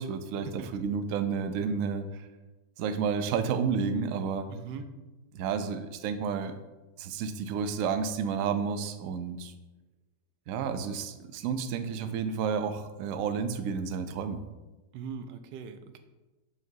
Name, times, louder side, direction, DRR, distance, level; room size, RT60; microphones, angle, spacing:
voice 1, 0.0-2.3 2.8-4.5 5.3-6.6 7.0-9.5 10.5-14.4, right 6 dB, 70° right, 9 dB, 0.8 m, -31 dB
voice 2, 4.5-4.9 14.9-16.0, right 6 dB, 85° right, 9 dB, 1.2 m, -40 dB
7.5 x 5.8 x 2.7 m, 1.1 s
omnidirectional pair, 1.8 m